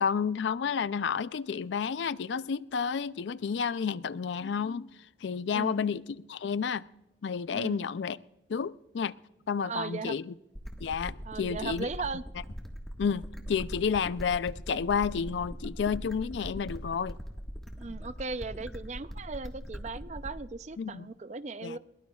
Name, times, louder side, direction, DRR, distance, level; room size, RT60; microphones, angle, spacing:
voice 1, 0.0-4.9 5.2-6.0 6.3-6.8 7.2-8.2 8.5-9.1 9.5-10.3 10.8-11.9 13.0-17.2 20.8-21.1 21.6-21.8, left 6 dB, 75° left, 0.4 m, -31 dB
voice 2, 5.5-5.8 7.5-7.8 9.6-10.2 11.2-12.2 17.8-21.8, right 4 dB, 40° right, 0.5 m, -37 dB
sound 1, 10.5-20.5, equal, ahead, 1.4 m, -41 dB
21.5 x 20.0 x 2.3 m
head